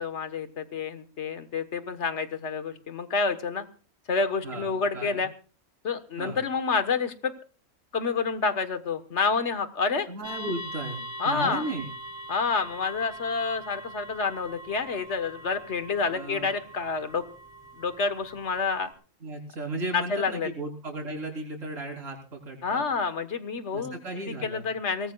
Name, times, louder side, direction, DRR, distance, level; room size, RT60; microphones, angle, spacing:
voice 1, 0.0-3.6 4.1-5.3 5.8-7.3 7.9-10.1 11.2-11.6 12.3-17.2 17.8-18.9 19.9-20.5 22.6-23.9 24.3-25.1, left 4 dB, 55° left, 10 dB, 1.6 m, -28 dB
voice 2, 4.4-5.2 6.2-6.4 10.1-11.9 16.1-16.5 19.2-22.8 23.7-24.7, right 2 dB, 65° right, 0 dB, 4.5 m, -35 dB
sound 1, 10.2-18.9, right 1 dB, 10° left, 4.2 m, -42 dB
23.5 x 19.0 x 2.4 m, 0.37 s
omnidirectional pair, 1.4 m